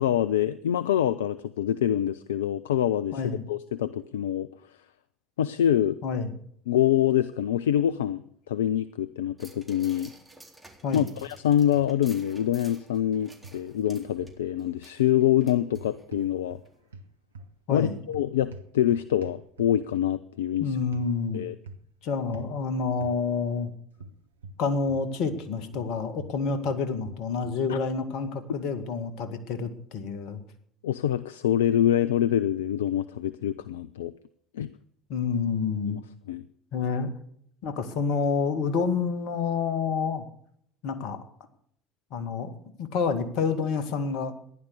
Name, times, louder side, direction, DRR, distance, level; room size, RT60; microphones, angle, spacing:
voice 1, 0.0-3.2 3.5-4.5 5.4-6.0 6.7-10.1 10.9-16.6 17.7-20.8 21.3-21.5 27.7-27.8 30.8-34.1 34.5-34.7 35.9-36.0 36.3-36.4, left 11 dB, 75° left, 15 dB, 0.5 m, -25 dB
voice 2, 3.1-3.4 6.0-6.3 10.8-11.1 17.7-18.0 20.6-21.4 22.0-23.7 24.6-30.4 35.1-36.0 36.7-37.1 37.6-40.2 40.8-41.2 42.1-42.5 42.8-44.3, left 5 dB, 60° left, 10 dB, 2.0 m, -28 dB
sound 1, 9.4-16.3 16.7-16.8, right 2 dB, 10° right, 3.9 m, -53 dB
sound 2, 10.9-11.4 11.7-12.2 13.4-14.4 15.7-16.7 16.9-19.9 20.9-21.1 21.6-21.9 22.3-22.6 23.0-23.2 24.0-25.5 25.7-27.6, right 2 dB, 80° right, 0.9 m, -45 dB
15.0 x 11.0 x 6.7 m, 0.67 s
figure-of-eight pair, 60°, 0 cm